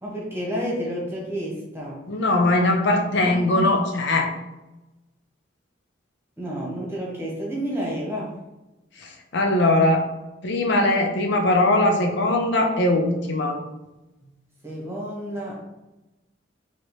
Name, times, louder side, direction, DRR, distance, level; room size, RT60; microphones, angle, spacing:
voice 1, 0.0-2.0 3.2-3.8 6.4-8.4 14.6-15.6, equal, 15° right, -4 dB, 1.2 m, -30 dB
voice 2, 2.1-4.3 9.0-10.1 10.4-13.6, left 2 dB, 65° left, 2 dB, 0.6 m, -20 dB
4.8 x 2.9 x 3.1 m, 1.0 s
head